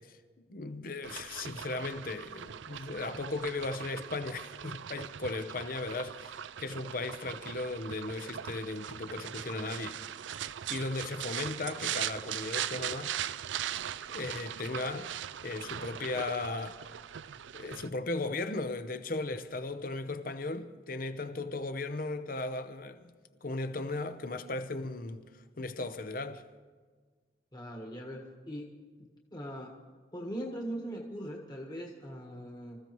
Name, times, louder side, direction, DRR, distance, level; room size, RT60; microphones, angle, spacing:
voice 1, 0.0-10.0 10.7-13.1 14.1-15.1 15.4-16.8 17.5-23.1 23.4-25.3 25.6-26.4, left 3 dB, 50° left, 0.8 m, -36 dB
sound 1, 1.0-17.9, right 10 dB, 75° right, 0.4 m, -40 dB
voice 2, 27.5-28.7 29.0-29.7 30.1-32.8, equal, 20° left, 1.5 m, -40 dB
26.0 x 15.0 x 3.1 m
head